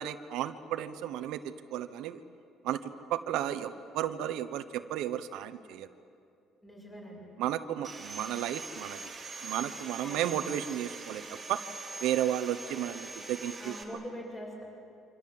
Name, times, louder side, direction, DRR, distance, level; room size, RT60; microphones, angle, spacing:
voice 1, 0.0-2.2 2.6-5.9 7.4-9.0 9.4-11.2 11.5-11.6 12.0-13.8, right 11 dB, 80° right, 10 dB, 1.0 m, -33 dB
voice 2, 6.6-7.2 10.0-10.3 13.6-14.6, equal, 15° left, -2 dB, 7.8 m, -43 dB
Sawing, 7.8-13.8, right 4 dB, 15° right, 3.1 m, -43 dB
27.5 x 25.5 x 7.8 m, 2.6 s
cardioid pair, 175°, 0 cm